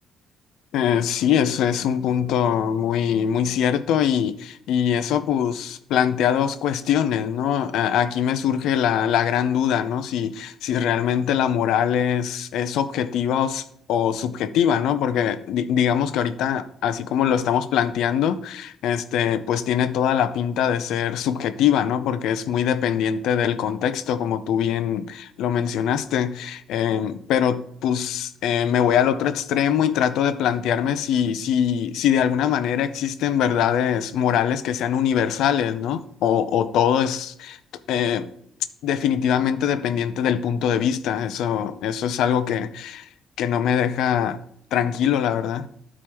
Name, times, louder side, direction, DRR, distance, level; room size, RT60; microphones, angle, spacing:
voice 1, 0.7-37.6 37.9-38.3 38.8-43.1 43.4-44.4 44.7-45.7, left 9 dB, 85° left, 0.5 m, -22 dB
12.5 x 4.8 x 3.0 m
cardioid pair, 90°, 0 cm